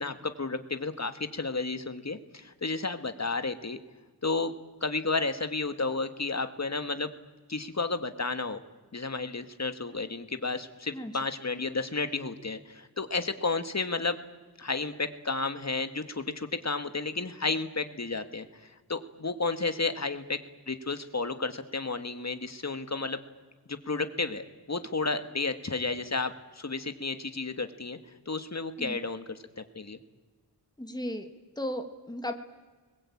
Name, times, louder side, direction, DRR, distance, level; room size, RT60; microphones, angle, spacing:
voice 1, 0.0-3.8 4.2-4.5 4.8-7.1 7.5-8.6 8.9-14.2 14.6-20.4 20.7-23.2 23.7-28.0 28.3-30.0, left 3 dB, 40° left, 8 dB, 1.9 m, -32 dB
voice 2, 30.8-31.3 31.6-32.3, left 1 dB, 10° left, 6 dB, 2.0 m, -35 dB
29.0 x 21.5 x 8.7 m, 1.4 s
wide cardioid pair, 90°, 40 cm